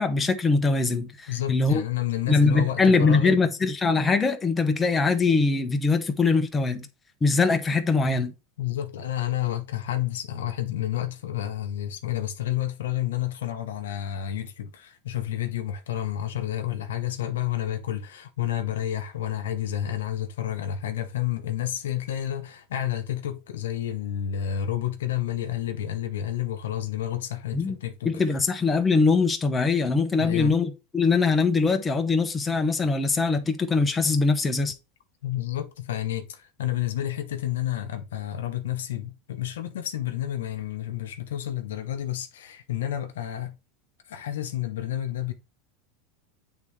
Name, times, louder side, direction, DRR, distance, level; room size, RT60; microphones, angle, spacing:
voice 1, 0.0-1.8 2.3-6.9 7.2-8.3 27.5-27.7 28.0-34.7, left 4 dB, 20° left, 1.0 m, -22 dB
voice 2, 1.3-3.4 8.6-28.2 30.1-30.6 35.2-43.6 44.1-45.3, left 12 dB, 85° left, 0.8 m, -30 dB
8.2 x 3.6 x 3.2 m
hypercardioid pair, 110°, 0 cm